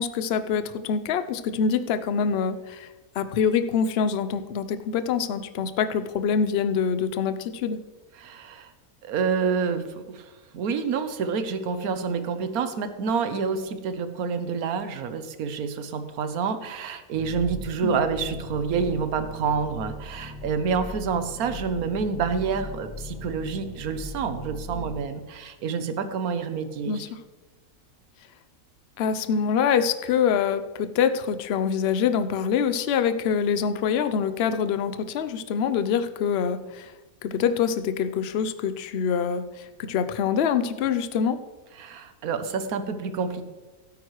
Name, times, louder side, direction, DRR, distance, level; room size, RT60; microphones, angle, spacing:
voice 1, 0.0-2.9 3.1-7.8 17.8-18.0 26.9-27.2 29.0-36.9 37.2-41.4, left 7 dB, 55° left, 11 dB, 0.7 m, -25 dB
voice 2, 8.2-8.7 9.0-27.0 41.8-43.4, right 5 dB, 80° right, 9 dB, 1.3 m, -28 dB
sound 1, 17.1-25.0, left 2 dB, 5° right, 1.4 m, -39 dB
16.5 x 9.0 x 3.1 m, 1.2 s
omnidirectional pair, 1.6 m